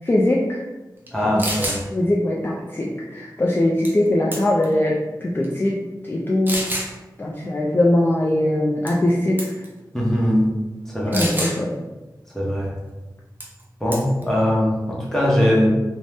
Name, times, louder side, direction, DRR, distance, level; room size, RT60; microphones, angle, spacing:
voice 1, 0.0-0.6 1.9-4.9 5.2-5.7 6.0-6.6 7.2-9.5 11.1-11.7, left 1 dB, 30° left, -3 dB, 0.3 m, -21 dB
voice 2, 1.1-1.8 9.9-10.5 10.9-11.3 12.3-12.7 13.8-15.7, equal, 5° left, -5 dB, 0.9 m, -20 dB
sound 1, 1.1-1.2 1.4-1.8 3.8-4.1 4.3-4.7 5.4-5.5 6.5-6.9 8.9-9.1 9.4-9.7 11.1-11.6 13.4-13.6 13.9-14.2, right 1 dB, 25° right, 0.6 m, -27 dB
2.6 x 2.1 x 3.3 m, 1.1 s
wide cardioid pair, 70°, 7 cm